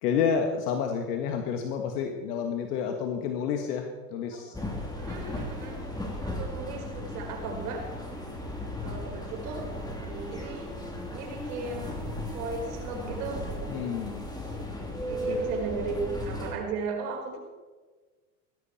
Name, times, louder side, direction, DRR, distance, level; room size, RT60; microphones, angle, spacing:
voice 1, 0.0-4.5 13.7-14.3 15.3-15.5, left 7 dB, 75° left, 4 dB, 1.9 m, -29 dB
voice 2, 4.3-4.7 5.0-5.8 6.2-7.9 8.8-9.7 10.0-10.7 11.1-12.0 12.3-13.4 15.0-17.4, right 4 dB, 70° right, 2 dB, 4.8 m, -36 dB
sound 1, 4.5-16.5, equal, 10° left, 2.9 m, -36 dB
16.5 x 14.0 x 4.4 m, 1.4 s
supercardioid pair, 120°, 47 cm